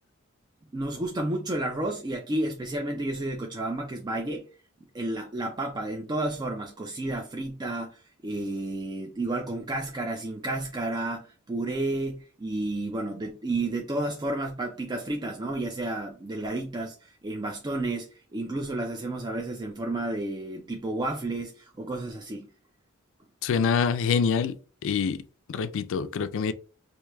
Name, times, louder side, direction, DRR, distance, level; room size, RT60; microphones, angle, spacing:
voice 1, 0.7-4.4 4.9-18.1 18.3-22.5, right 2 dB, 20° right, 0.4 m, -31 dB
voice 2, 23.4-24.6 24.8-25.2 25.5-26.5, left 6 dB, 60° left, 0.3 m, -25 dB
4.6 x 2.7 x 2.2 m
head